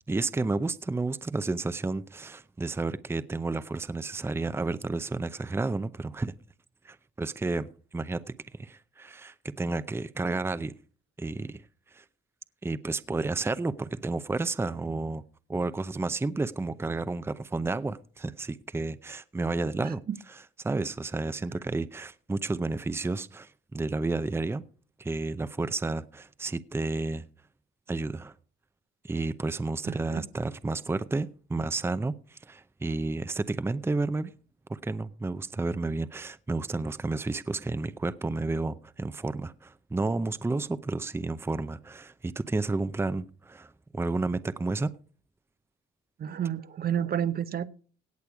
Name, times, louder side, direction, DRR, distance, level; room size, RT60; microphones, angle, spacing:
voice 1, 0.0-6.3 6.8-10.7 11.2-11.6 11.9-12.0 12.6-15.2 15.5-20.0 20.6-24.6 25.0-27.3 27.9-28.3 29.0-34.3 34.7-44.9, right 3 dB, 10° right, 0.6 m, -31 dB
voice 2, 19.8-20.2 29.9-30.2 46.2-47.7, right 9 dB, 50° right, 0.7 m, -31 dB
17.5 x 6.8 x 4.8 m
cardioid pair, 90°, 20 cm